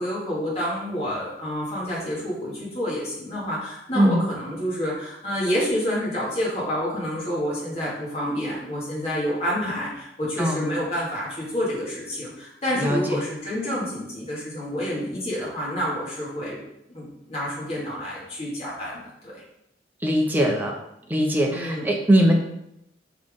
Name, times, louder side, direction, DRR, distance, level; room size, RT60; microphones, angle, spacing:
voice 1, 0.0-16.6 16.9-19.4 21.5-21.9, equal, 35° left, -7 dB, 2.4 m, -28 dB
voice 2, 12.8-13.2 20.0-20.7 21.1-22.4, equal, 10° right, 0 dB, 1.0 m, -21 dB
6.4 x 5.9 x 3.8 m, 0.80 s
head